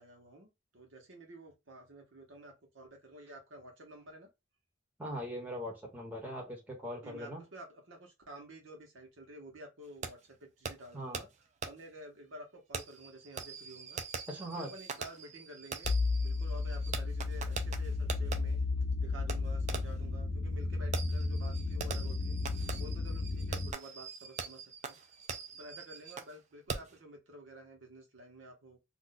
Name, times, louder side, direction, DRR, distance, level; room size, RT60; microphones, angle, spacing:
voice 1, 0.0-4.3 7.0-11.3 11.6-14.0 14.6-18.6 19.0-22.4 22.8-25.0 25.5-28.8, right 1 dB, 80° right, 1.0 m, -51 dB
voice 2, 5.0-7.4 10.9-11.2 14.3-14.7, equal, 10° right, 1.0 m, -40 dB
Fireworks, 10.0-10.1 10.7-10.8 11.1-11.2 11.6-11.7 12.7-18.4 19.3-19.4 19.7-20.0 20.9-26.3 26.7-27.0, right 5 dB, 35° right, 0.4 m, -42 dB
sound 1, 15.8-23.7, left 3 dB, 50° left, 0.4 m, -33 dB
2.5 x 2.2 x 3.8 m
head